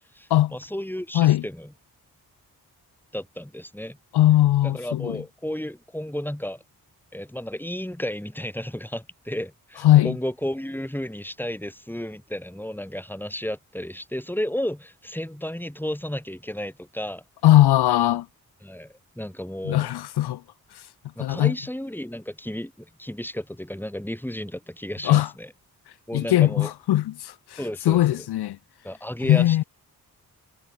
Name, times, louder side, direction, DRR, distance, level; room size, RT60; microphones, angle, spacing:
voice 1, 0.1-1.7 3.1-4.0 4.6-6.6 7.1-17.2 18.6-19.9 21.2-25.5 26.1-26.7 27.6-28.3 28.8-29.6, left 1 dB, 5° left, 4.3 m, -33 dB
voice 2, 4.1-5.2 9.8-10.1 17.4-18.3 19.6-20.4 20.7-20.8 21.2-21.5 25.0-25.3 26.1-27.6 27.9-28.6 29.3-29.6, left 14 dB, 75° left, 0.7 m, -19 dB
cardioid pair, 55°, 39 cm